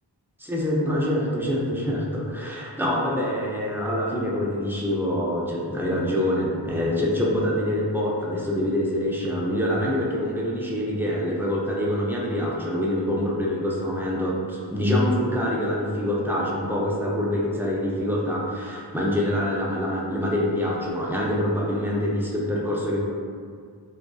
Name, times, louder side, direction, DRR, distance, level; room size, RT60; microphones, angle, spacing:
voice 1, 0.4-23.0, left 1 dB, 5° right, -4 dB, 0.4 m, -25 dB
2.5 x 2.3 x 2.3 m, 2.1 s
wide cardioid pair, 45°, 42 cm